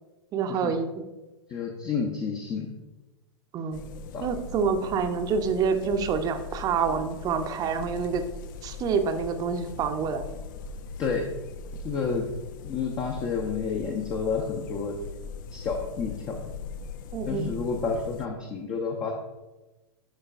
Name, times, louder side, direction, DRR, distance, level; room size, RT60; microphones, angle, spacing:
voice 1, 0.3-1.0 3.5-3.8 4.2-8.2 8.6-10.2 17.1-17.5, right 6 dB, 25° right, 7 dB, 0.7 m, -27 dB
voice 2, 1.5-2.7 4.1-4.3 11.0-11.2 11.8-12.3 12.6-15.0 15.5-16.4 17.3-19.1, left 5 dB, 25° left, 1 dB, 0.8 m, -30 dB
sound 1, 3.7-18.3, left 4 dB, 50° left, 0.4 m, -40 dB
11.5 x 4.6 x 2.5 m, 1.1 s
figure-of-eight pair, 100°, 14 cm